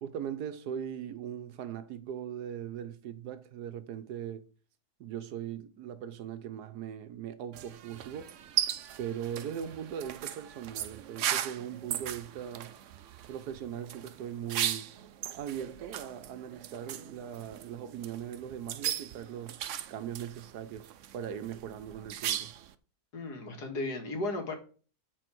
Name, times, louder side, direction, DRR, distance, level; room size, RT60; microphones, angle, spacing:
voice 1, 0.0-4.4 5.0-8.3 9.0-12.7 13.3-14.9 15.3-22.5, right 9 dB, 85° right, 1.4 m, -40 dB
sound 1, 7.5-22.7, right 11 dB, 65° right, 0.8 m, -38 dB
voice 2, 23.1-24.6, left 2 dB, 85° left, 2.3 m, -35 dB
9.2 x 4.4 x 6.2 m
omnidirectional pair, 1.7 m